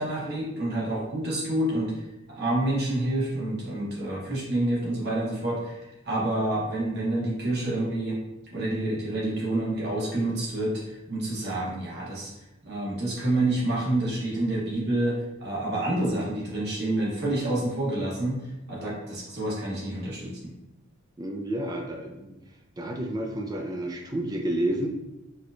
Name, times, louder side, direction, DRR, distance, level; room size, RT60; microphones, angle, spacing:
voice 1, 0.0-8.2 8.5-12.3 12.6-18.4 18.7-20.4, right 1 dB, 50° right, -6 dB, 1.0 m, -28 dB
voice 2, 21.2-22.3 22.8-24.9, right 1 dB, 20° right, 2 dB, 0.3 m, -30 dB
4.3 x 2.2 x 2.5 m, 0.97 s
head